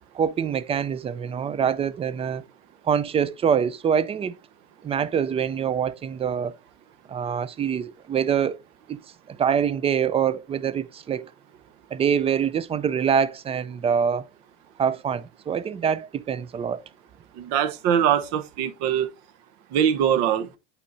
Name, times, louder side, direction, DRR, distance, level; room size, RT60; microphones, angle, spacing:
voice 1, 0.1-2.4 2.8-4.4 4.8-6.6 7.1-8.6 8.9-9.0 9.3-11.3 11.9-14.3 14.8-16.8, right 7 dB, 20° right, 0.4 m, -25 dB
voice 2, 17.4-19.1 19.7-20.5, right 9 dB, 60° right, 1.0 m, -22 dB
8.3 x 4.5 x 2.6 m
supercardioid pair, 105°, 32 cm